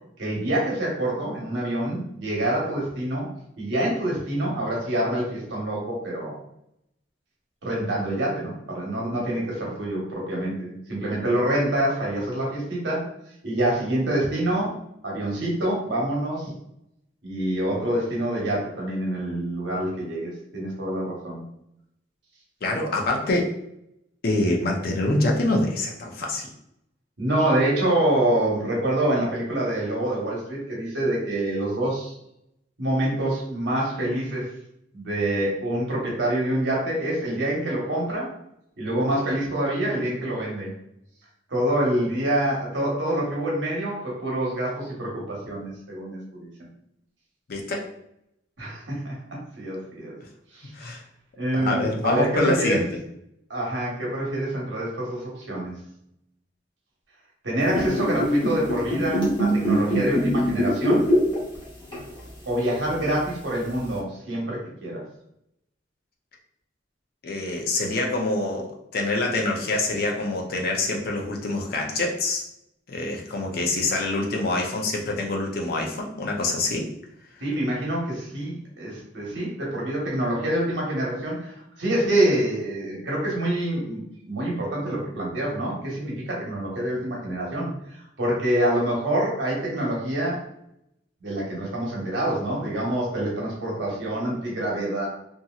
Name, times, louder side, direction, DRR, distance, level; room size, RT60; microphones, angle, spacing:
voice 1, 0.2-3.3 3.6-6.4 7.6-13.0 13.4-14.8 15.0-16.5 17.2-21.4 27.2-32.1 32.8-34.5 34.9-38.3 38.8-40.7 41.5-46.7 48.6-49.1 49.6-50.2 50.5-50.9 51.4-52.8 53.5-55.7 57.4-61.1 62.5-65.0 77.4-84.0 84.3-90.4 91.2-95.1, right 1 dB, 80° right, -4 dB, 1.1 m, -26 dB
voice 2, 22.6-23.5 24.2-26.5 47.5-47.9 50.7-51.0 51.5-52.8 67.2-72.4 72.9-76.9, left 2 dB, 55° left, 1 dB, 0.5 m, -25 dB
sound 1, 57.6-61.6 61.9-62.1 63.0-63.1, equal, 30° left, 1.0 m, -22 dB
2.8 x 2.6 x 2.3 m, 0.77 s
head